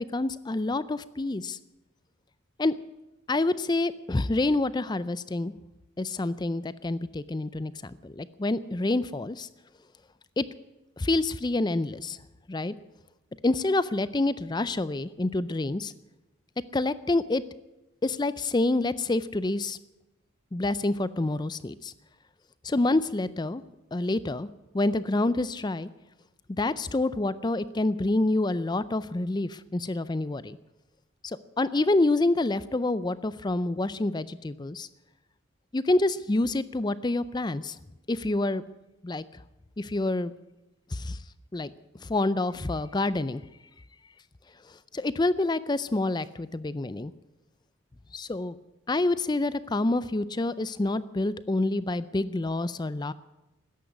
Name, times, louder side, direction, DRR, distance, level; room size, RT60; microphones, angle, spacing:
voice 1, 0.0-1.6 2.6-2.8 3.3-5.5 6.0-9.5 10.4-10.5 11.0-12.2 12.5-12.7 13.4-15.9 16.7-17.4 18.0-19.8 20.5-21.9 22.6-23.6 23.9-24.5 24.7-25.9 26.6-30.6 31.2-34.9 35.7-37.8 38.1-38.6 39.0-39.2 39.8-40.3 40.9-41.2 41.5-41.7 42.0-43.4 44.9-47.1 48.1-48.6 48.9-53.1, left 2 dB, 20° left, 16 dB, 0.4 m, -27 dB
14.0 x 10.5 x 9.5 m, 0.98 s
head